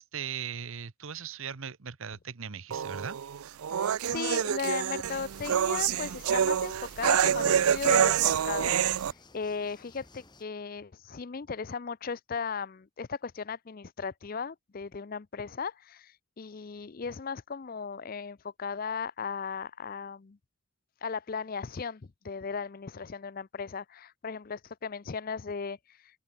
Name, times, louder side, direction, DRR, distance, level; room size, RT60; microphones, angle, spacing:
voice 1, 0.0-3.2, right 7 dB, 65° right, 0.9 m, -38 dB
sound 1, 2.7-9.1, right 8 dB, 80° right, 0.4 m, -27 dB
voice 2, 3.7-8.9 9.3-20.4 21.0-26.0, left 5 dB, 40° left, 0.5 m, -36 dB
sound 2, 5.3-10.4, left 3 dB, 20° left, 2.4 m, -57 dB
open air
head